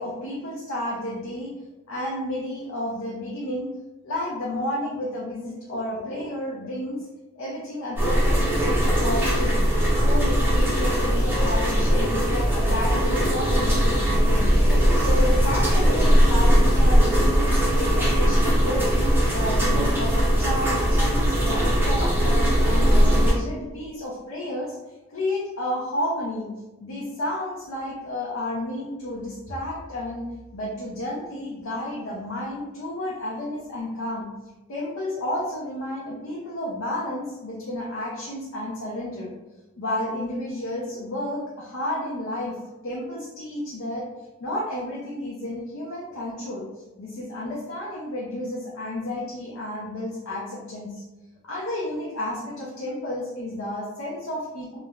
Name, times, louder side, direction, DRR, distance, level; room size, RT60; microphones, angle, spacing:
voice 1, 0.0-1.5 1.9-3.7 4.0-7.1 7.4-9.6 10.0-19.0 19.3-24.8 25.1-26.5 26.8-30.3 30.5-34.3 34.7-39.3 39.8-42.6 42.8-44.0 44.4-46.7 47.0-51.0 51.4-54.8, left 1 dB, 75° left, -5 dB, 0.5 m, -31 dB
sound 1, 8.0-23.3, equal, 10° right, 0.5 m, -20 dB
3.2 x 2.0 x 2.3 m, 1.1 s
head